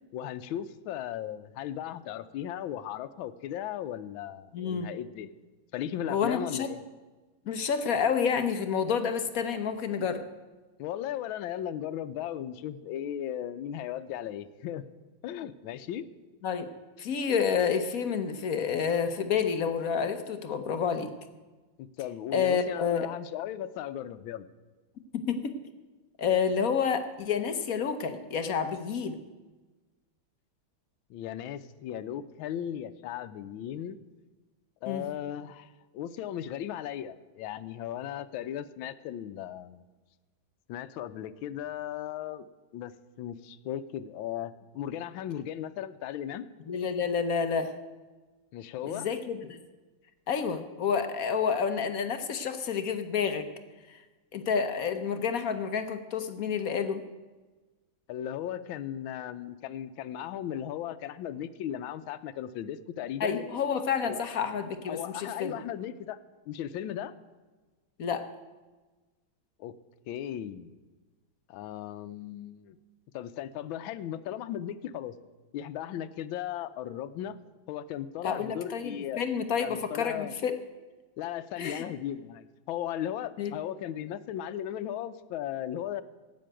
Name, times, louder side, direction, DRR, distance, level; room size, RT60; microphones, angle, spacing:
voice 1, 0.1-5.3 5.7-6.8 10.8-14.8 15.2-16.0 21.8-24.5 31.1-34.0 34.8-39.8 40.7-42.5 42.7-42.9 43.2-46.4 48.5-49.1 58.1-63.4 64.1-64.2 64.9-66.2 66.5-67.1 69.6-69.8 70.1-70.7 71.5-72.8 73.1-75.2 75.5-77.4 77.7-79.2 79.6-80.3 81.2-86.0, left 10 dB, 80° left, 11 dB, 1.4 m, -36 dB
voice 2, 4.5-4.9 6.1-6.7 7.5-10.2 16.4-16.7 17.0-21.1 22.3-23.1 25.1-25.6 26.2-29.2 34.9-35.1 46.7-47.8 48.9-49.6 50.3-53.5 53.9-54.0 54.3-57.0 63.2-65.6 68.0-68.3 78.2-80.5 81.6-81.8 83.4-83.5, left 6 dB, 55° left, 9 dB, 1.1 m, -29 dB
13.0 x 8.6 x 8.8 m, 1.2 s
omnidirectional pair, 2.2 m